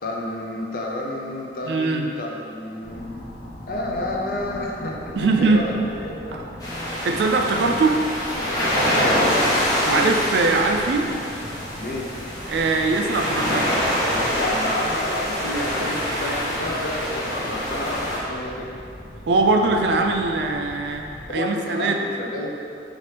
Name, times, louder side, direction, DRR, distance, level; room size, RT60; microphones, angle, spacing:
voice 1, 0.0-3.2 3.7-6.5 8.9-10.1 11.8-12.1 14.3-18.7 21.3-22.5, left 1 dB, 55° left, -2 dB, 0.5 m, -30 dB
voice 2, 1.7-2.1 5.2-5.6 6.3-6.4 7.0-8.0 9.9-11.1 12.5-13.7 19.2-21.1 21.3-22.0, right 3 dB, 70° right, 3 dB, 0.3 m, -21 dB
sound 1, 2.8-21.3, equal, 75° left, 0.8 m, -40 dB
sound 2, 6.6-18.2, equal, 20° left, 0.8 m, -25 dB
4.2 x 2.5 x 3.3 m, 2.6 s
head